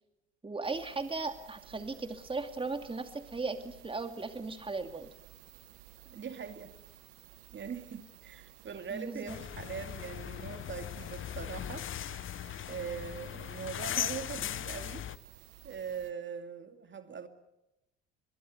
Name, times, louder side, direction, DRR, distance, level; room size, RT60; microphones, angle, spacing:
voice 1, 0.4-5.1 8.9-9.4, right 3 dB, 20° right, 2.5 m, -37 dB
sound 1, 0.6-16.1, right 16 dB, 75° right, 1.4 m, -55 dB
voice 2, 6.1-6.7 7.5-12.3 12.7-15.1 15.6-17.3, right 6 dB, 40° right, 2.5 m, -42 dB
sound 2, 9.3-15.2, left 11 dB, 45° left, 0.9 m, -38 dB
24.0 x 21.5 x 8.0 m
hypercardioid pair, 60°, 29 cm